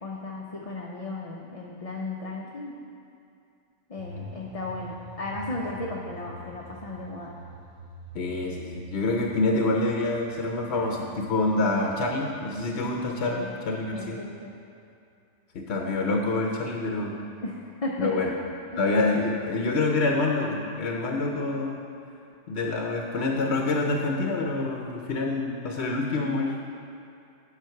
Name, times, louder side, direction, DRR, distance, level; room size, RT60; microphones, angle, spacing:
voice 1, 0.0-2.7 3.9-7.3 13.3-13.5 13.9-14.5 17.4-18.1 18.7-18.8, left 2 dB, 35° left, -3 dB, 0.7 m, -35 dB
sound 1, 4.0-13.9 14.1-14.2, right 1 dB, 40° right, 0.8 m, -46 dB
voice 2, 8.1-14.2 15.5-17.1 18.0-18.3 18.8-21.8 22.5-26.6, left 2 dB, 55° left, 1 dB, 1.0 m, -26 dB
9.2 x 5.7 x 5.8 m, 2.5 s
omnidirectional pair, 1.4 m